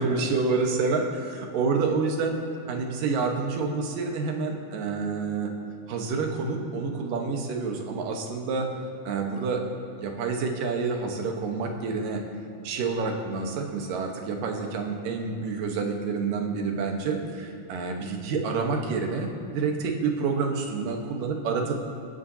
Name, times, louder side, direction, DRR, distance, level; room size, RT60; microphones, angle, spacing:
voice 1, 0.0-2.4 2.7-5.5 5.9-8.7 9.0-9.6 10.0-12.2 12.6-21.7, right 4 dB, 90° right, 2 dB, 3.0 m, -28 dB
26.0 x 11.0 x 2.8 m, 2.9 s
omnidirectional pair, 3.8 m